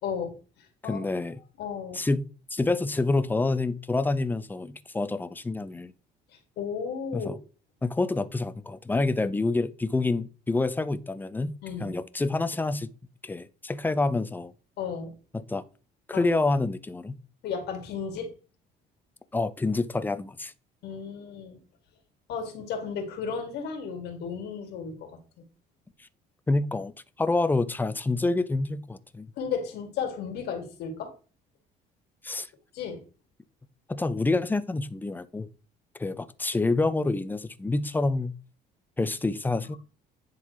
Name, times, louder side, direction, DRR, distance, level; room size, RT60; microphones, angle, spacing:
voice 1, 0.0-1.0 1.6-2.0 6.6-7.3 11.6-12.0 14.8-15.1 16.1-16.2 17.4-18.3 20.8-21.6 22.3-25.2 29.4-31.1 32.7-33.0, left 6 dB, 80° left, 2.0 m, -34 dB
voice 2, 0.8-1.4 1.9-5.9 7.1-7.4 7.8-12.9 13.2-14.5 15.3-15.6 16.1-17.2 19.3-20.5 26.5-26.9 27.2-29.3 32.2-32.5 33.9-35.5 36.0-38.3 39.0-39.8, left 3 dB, 10° left, 0.5 m, -27 dB
9.9 x 3.9 x 3.1 m
cardioid pair, 110°, 17 cm